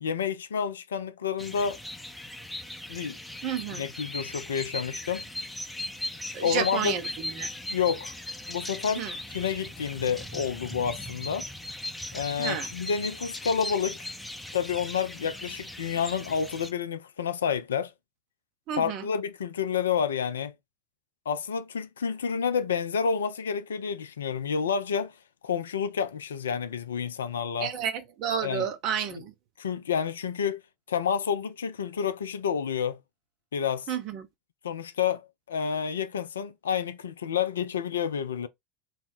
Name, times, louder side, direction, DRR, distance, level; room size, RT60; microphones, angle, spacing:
voice 1, 0.0-1.8 2.9-3.2 3.7-5.2 6.4-6.9 7.7-8.1 8.5-11.5 12.1-14.0 14.5-17.9 18.8-20.5 21.3-25.1 25.4-27.7 28.4-28.7 29.6-30.6 30.9-33.0 33.5-33.9 34.6-38.5, left 7 dB, 75° left, 0.3 m, -29 dB
sound 1, 1.4-16.7, left 1 dB, 5° left, 0.5 m, -38 dB
voice 2, 3.4-3.8 6.3-7.5 9.0-9.1 12.4-12.7 18.7-19.0 27.6-29.3 33.9-34.3, right 8 dB, 50° right, 0.7 m, -31 dB
2.8 x 2.0 x 3.9 m
figure-of-eight pair, 75°, 0 cm